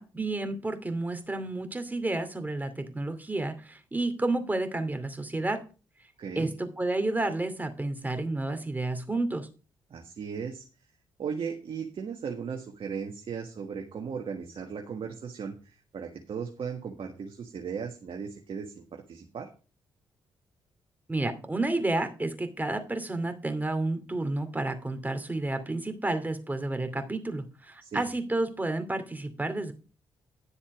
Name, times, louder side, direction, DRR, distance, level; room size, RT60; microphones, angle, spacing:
voice 1, 0.0-5.6 6.4-9.5 21.1-29.7, right 2 dB, 15° right, 7 dB, 2.5 m, -31 dB
voice 2, 6.2-6.5 9.9-10.6 11.2-19.5 27.8-28.0, right 6 dB, 60° right, 2 dB, 1.5 m, -37 dB
11.0 x 7.1 x 4.9 m, 0.35 s
hypercardioid pair, 45°, 10 cm